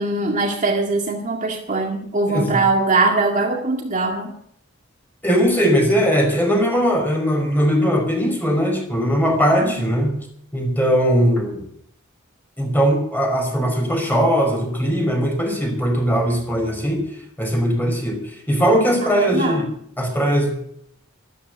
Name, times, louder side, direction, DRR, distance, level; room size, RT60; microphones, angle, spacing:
voice 1, 0.0-4.3 9.6-9.9 19.0-19.6, right 3 dB, 40° right, 1 dB, 2.0 m, -21 dB
voice 2, 2.3-2.6 5.2-10.1 10.5-11.6 12.6-17.1 17.4-19.7 20.0-20.5, equal, 10° left, 2 dB, 5.1 m, -19 dB
13.5 x 13.0 x 7.8 m, 0.69 s
head